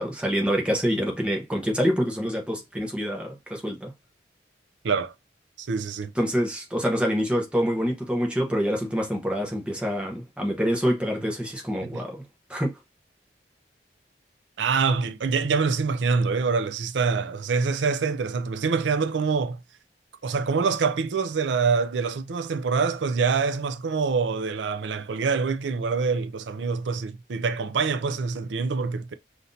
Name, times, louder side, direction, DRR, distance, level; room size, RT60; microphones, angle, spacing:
voice 1, 0.0-3.9 6.1-12.2 12.5-12.7, equal, 5° right, 0.9 m, -26 dB
voice 2, 5.6-6.1 14.6-19.6 20.2-29.1, right 5 dB, 85° right, 0.5 m, -25 dB
5.7 x 2.6 x 2.6 m
head